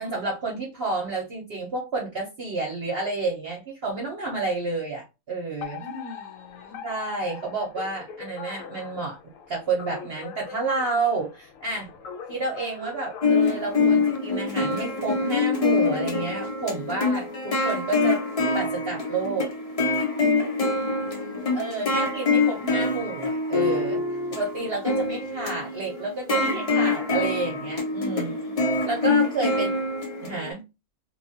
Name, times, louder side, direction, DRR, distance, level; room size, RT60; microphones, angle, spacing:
voice 1, 0.0-5.8 6.8-9.2 9.5-11.9 12.3-18.2 18.5-19.5 21.5-24.0 24.3-28.3 28.9-29.7 30.2-30.6, right 3 dB, 50° right, 0.9 m, -30 dB
Alarm, 5.6-14.2, left 7 dB, 70° left, 0.9 m, -41 dB
voice 2, 5.8-6.8 20.7-22.1 28.0-28.8 29.5-29.6, left 2 dB, 85° left, 1.2 m, -44 dB
sound 1, 13.2-30.5, left 3 dB, 40° left, 0.5 m, -25 dB
2.9 x 2.4 x 2.7 m
omnidirectional pair, 1.5 m